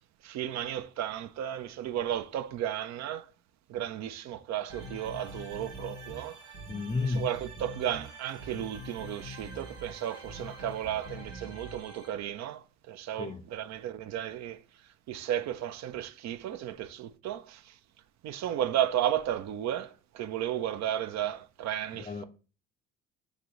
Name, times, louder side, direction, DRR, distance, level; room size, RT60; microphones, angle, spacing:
voice 1, 0.2-3.3 3.7-6.4 7.1-14.6 15.1-17.7 18.2-22.2, right 11 dB, 55° right, 0.5 m, -34 dB
sound 1, 4.7-12.1, equal, 85° right, 1.3 m, -44 dB
voice 2, 6.7-7.3 13.2-13.5 21.9-22.2, left 4 dB, 20° left, 0.4 m, -32 dB
6.5 x 2.6 x 3.0 m
hypercardioid pair, 65°, 33 cm